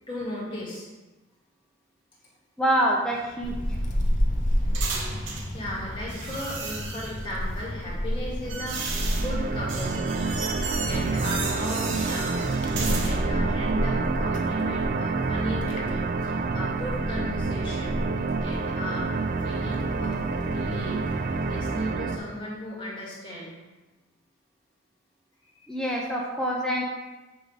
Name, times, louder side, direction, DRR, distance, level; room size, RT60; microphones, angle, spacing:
voice 1, 0.1-0.9 5.0-10.3 10.9-12.5 13.0-18.0 18.4-19.1 19.4-21.0 21.5-23.5 25.5-25.8, left 1 dB, 25° left, -6 dB, 2.1 m, -36 dB
voice 2, 2.6-3.8 25.7-26.8, equal, 5° left, -3 dB, 0.6 m, -26 dB
sound 1, 3.1-5.5 6.1-7.3 8.0-13.2, right 4 dB, 65° right, 1.0 m, -35 dB
Wind, 3.4-21.9, equal, 40° left, 0.8 m, -32 dB
sound 2, 8.4-22.2, right 3 dB, 50° right, 0.4 m, -28 dB
7.8 x 3.4 x 4.9 m, 1.2 s
head